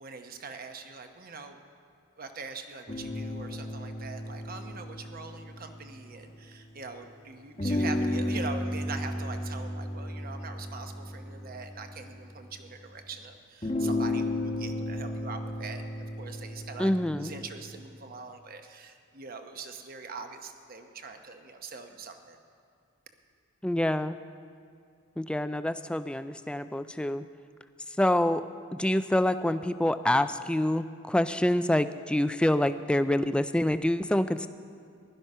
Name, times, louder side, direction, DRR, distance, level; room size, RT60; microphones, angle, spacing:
voice 1, 0.0-1.6 2.2-22.4, right 4 dB, 45° right, 6 dB, 1.0 m, -43 dB
sound 1, 2.9-6.8 7.6-12.7 13.6-17.8, left 1 dB, 30° left, 1.0 m, -34 dB
voice 2, 16.8-17.3 23.6-24.2 25.2-27.3 28.0-28.4 28.7-34.5, left 1 dB, 5° left, 12 dB, 0.3 m, -26 dB
15.5 x 12.0 x 5.5 m, 2.3 s
head